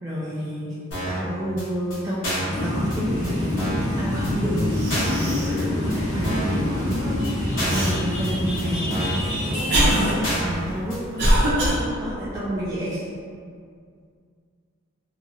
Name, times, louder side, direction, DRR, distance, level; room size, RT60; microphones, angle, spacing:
voice 1, 0.0-0.7 1.1-4.7 5.1-11.3 11.6-13.1, equal, 15° right, -10 dB, 0.3 m, -30 dB
sound 1, 0.9-1.2 1.6-1.7 1.9-2.0 2.2-2.6 2.9-3.0 3.2-3.3 3.6-3.9 4.2-4.3 4.6-4.7 4.9-5.2 5.6-5.7 5.9-6.0 6.2-6.6 6.9-7.0 7.2-7.3 7.6-7.9 8.2-8.3 8.6-8.7 8.9-9.2 9.6-9.7 9.9-10.0 10.2-10.6 10.9-11.0 11.2-11.3, equal, 70° left, 1.3 m, -29 dB
sound 2, 2.5-10.1, left 1 dB, 35° left, 0.8 m, -26 dB
Cough, 4.3-4.4 4.7-5.6 6.1-6.2 7.7-7.9 8.7-11.8, equal, 50° right, 0.7 m, -22 dB
2.9 x 2.8 x 2.3 m, 2.2 s
head